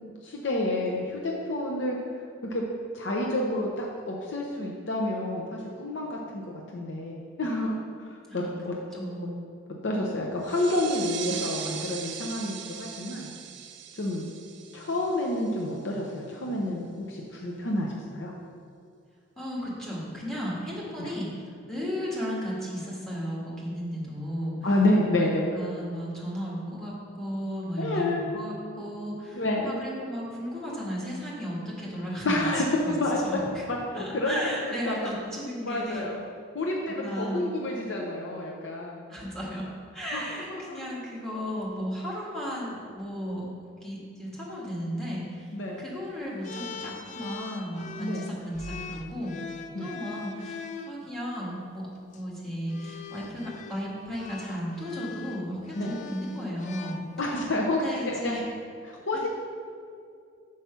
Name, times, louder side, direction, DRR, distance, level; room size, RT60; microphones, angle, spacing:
voice 1, 0.2-2.0 2.5-2.6 2.9-6.4 6.7-7.7 8.3-8.7 9.8-13.3 13.9-14.3 14.7-18.3 21.0-21.1 24.6-25.5 27.8-28.2 29.3-29.7 32.2-32.7 33.0-33.2 33.7-35.1 35.6-36.2 36.5-39.1 40.1-40.2 40.5-40.8 45.5-45.8 48.0-48.2 49.7-49.9 55.8-55.9 57.2-58.3 58.8-59.3, left 1 dB, 65° left, -2 dB, 0.7 m, -29 dB
voice 2, 8.9-9.4 19.4-24.6 25.1-32.5 32.8-32.9 33.2-33.6 33.9-36.0 36.9-37.4 39.1-39.7 39.9-43.4 43.8-45.5 45.8-49.3 49.8-51.9 52.1-57.0 57.8-58.4, equal, 5° left, -5 dB, 1.5 m, -35 dB
sound 1, 10.4-15.8, right 9 dB, 60° right, 0.4 m, -39 dB
sound 2, 46.4-51.0 52.0-52.2 52.7-57.5, left 4 dB, 40° left, 0.3 m, -41 dB
5.8 x 4.8 x 5.5 m, 2.3 s
head